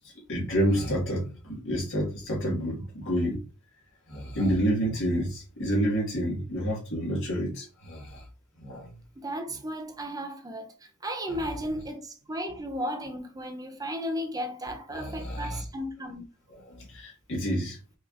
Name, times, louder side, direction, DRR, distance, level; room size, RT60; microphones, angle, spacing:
voice 1, 0.3-3.4 4.1-8.2 8.6-9.0 14.9-15.6 16.7-17.8, equal, 60° left, 1.7 m, -29 dB
voice 2, 9.2-16.3, equal, 15° right, 0.5 m, -35 dB
4.8 x 3.1 x 2.4 m
head